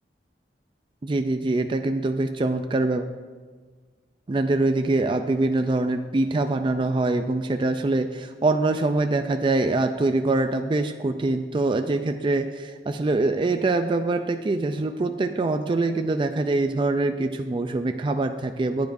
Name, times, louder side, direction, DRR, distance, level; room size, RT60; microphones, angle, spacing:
voice 1, 1.0-3.1 4.3-18.9, right 2 dB, 30° right, 6 dB, 0.4 m, -24 dB
15.0 x 9.3 x 2.6 m, 1.5 s
head